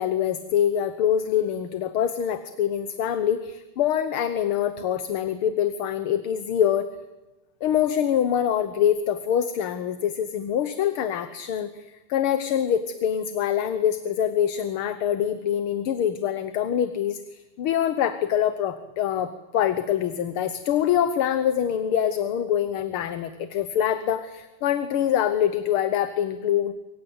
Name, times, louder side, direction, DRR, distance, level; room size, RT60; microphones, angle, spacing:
voice 1, 0.0-6.9 7.6-26.7, left 9 dB, 75° left, 11 dB, 2.0 m, -25 dB
25.5 x 24.5 x 8.0 m, 1.1 s
omnidirectional pair, 2.4 m